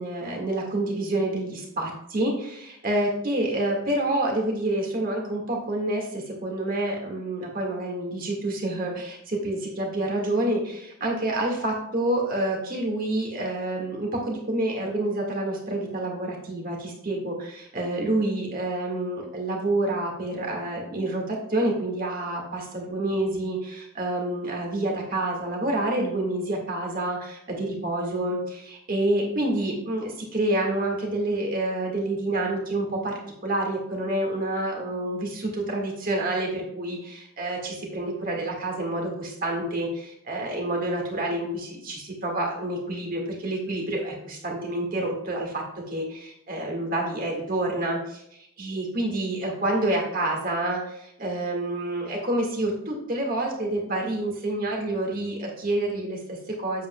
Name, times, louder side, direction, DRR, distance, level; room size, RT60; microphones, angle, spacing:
voice 1, 0.0-48.2 48.6-56.9, right 1 dB, 40° right, 0 dB, 1.7 m, -28 dB
8.3 x 7.4 x 2.2 m, 0.77 s
head